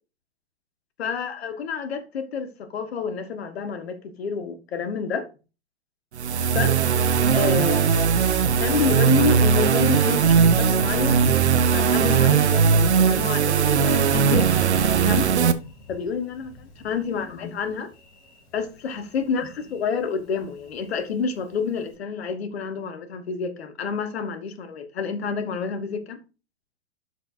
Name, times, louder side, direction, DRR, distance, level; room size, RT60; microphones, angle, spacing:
voice 1, 1.0-5.3 6.5-6.8 7.3-8.1 8.6-11.3 11.7-15.3 15.9-17.9 18.5-26.2, left 5 dB, 65° left, 1.7 m, -28 dB
sound 1, 6.1-15.5, right 7 dB, 75° right, 0.9 m, -19 dB
Thunder, 9.6-22.0, left 1 dB, 45° left, 4.0 m, -45 dB
12.5 x 4.8 x 2.7 m
figure-of-eight pair, 105°, 34 cm